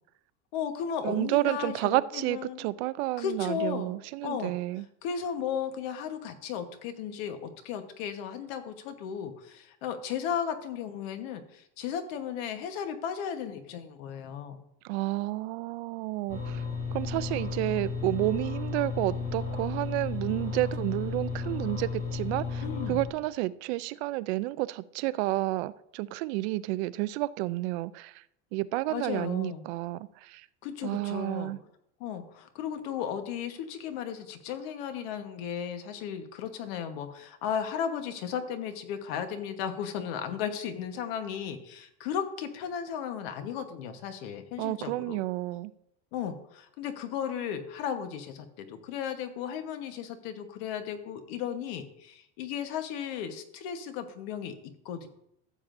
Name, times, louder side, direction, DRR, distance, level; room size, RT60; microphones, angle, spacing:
voice 1, 0.5-2.7 3.2-3.9 4.2-4.5 5.0-14.6 22.6-23.0 28.9-29.7 30.6-31.5 32.0-45.2 46.1-55.1, left 8 dB, 65° left, 1.2 m, -35 dB
voice 2, 1.0-4.9 14.8-16.6 16.9-28.2 28.5-30.5 30.8-31.6 44.6-45.7, right 18 dB, 85° right, 0.5 m, -30 dB
sound 1, 16.3-23.1, left 4 dB, 40° left, 3.3 m, -33 dB
15.0 x 7.2 x 2.6 m
cardioid pair, 180°, 32 cm